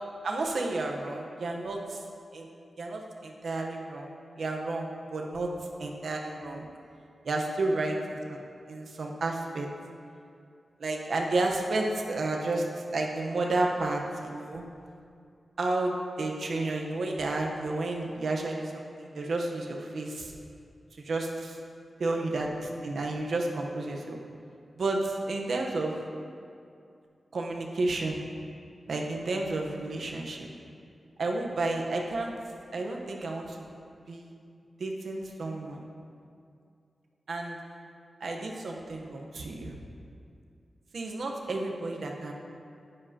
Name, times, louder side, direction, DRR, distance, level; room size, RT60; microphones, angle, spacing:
voice 1, 0.2-2.0 2.3-2.5 2.8-5.5 5.8-6.7 7.2-8.4 8.7-9.7 10.8-14.7 15.6-20.3 21.0-21.6 22.0-24.2 24.8-26.0 27.3-28.2 28.9-30.5 31.2-32.3 32.7-33.7 34.1-34.3 34.8-35.8 37.3-37.6 38.2-39.8 40.9-42.3, right 2 dB, 65° right, 1 dB, 1.0 m, -31 dB
10.5 x 9.8 x 2.9 m, 2.4 s
wide cardioid pair, 175°, 0 cm